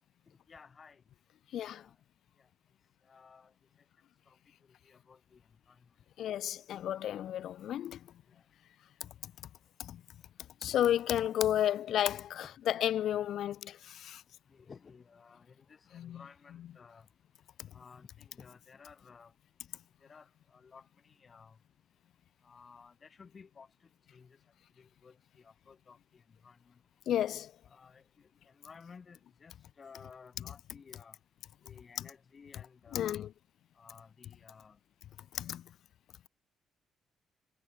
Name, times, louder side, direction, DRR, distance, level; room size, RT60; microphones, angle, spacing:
voice 1, 0.5-1.0 1.7-1.9 2.4-2.5 3.0-3.5 4.3-4.4 4.8-5.8 8.3-8.4 10.7-10.8 12.5-12.6 14.5-17.1 17.7-19.3 20.0-21.6 22.4-23.7 24.1-24.4 24.8-26.8 27.7-31.2 31.6-33.3 33.8-34.8, left 5 dB, 40° left, 4.5 m, -56 dB
voice 2, 6.2-8.0 9.8-10.0 10.6-14.2 15.9-16.2 27.1-27.5 32.9-33.3 35.3-35.6, left 11 dB, 75° left, 0.4 m, -32 dB
cardioid pair, 90°, 0 cm